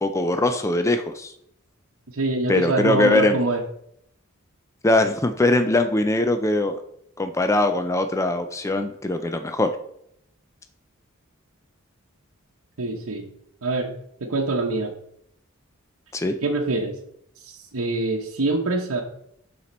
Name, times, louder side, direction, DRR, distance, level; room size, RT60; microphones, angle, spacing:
voice 1, 0.0-1.3 2.5-3.4 4.8-6.8 7.2-9.7 16.1-16.4, left 2 dB, 15° left, 7 dB, 0.4 m, -21 dB
voice 2, 2.1-3.6 12.8-13.3 13.6-13.9 14.2-14.9 16.4-17.0 17.4-19.0, right 2 dB, 75° right, -1 dB, 0.9 m, -25 dB
11.0 x 4.3 x 4.2 m, 0.73 s
head